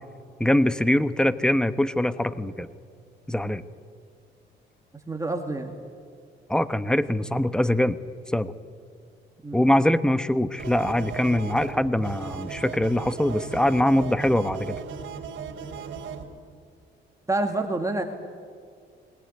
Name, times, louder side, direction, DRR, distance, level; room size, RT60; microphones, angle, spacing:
voice 1, 0.4-2.7 3.3-3.6 6.5-8.0 8.3-8.5 9.5-14.8, left 1 dB, 5° left, 13 dB, 1.0 m, -23 dB
voice 2, 5.1-5.7 9.4-9.6 17.3-18.0, right 2 dB, 15° right, 3 dB, 1.8 m, -27 dB
sound 1, 10.6-16.2, right 6 dB, 75° right, 2.9 m, -37 dB
21.0 x 18.5 x 9.5 m, 2.2 s
cardioid pair, 90°, 20 cm